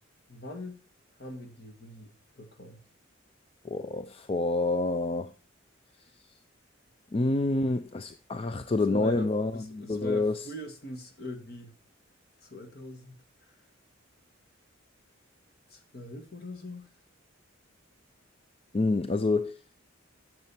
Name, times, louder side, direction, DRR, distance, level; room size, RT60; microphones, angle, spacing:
voice 1, 0.3-0.8 1.2-2.8 8.9-11.7 12.4-13.2 15.7-16.9, left 1 dB, 50° left, 1.8 m, -41 dB
voice 2, 3.6-5.3 7.1-10.5 18.7-19.6, left 2 dB, 30° left, 0.4 m, -28 dB
10.5 x 6.8 x 4.4 m
head